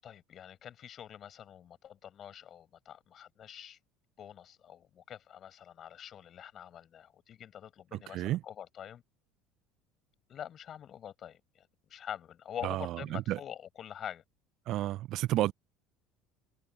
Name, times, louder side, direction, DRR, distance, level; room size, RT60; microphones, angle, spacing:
voice 1, 0.0-3.8 4.2-9.0 10.3-14.2, left 9 dB, 45° left, 7.2 m, -46 dB
voice 2, 7.9-8.4 12.6-13.4 14.7-15.5, right 15 dB, 55° right, 0.5 m, -31 dB
figure-of-eight pair, 65°, 0 cm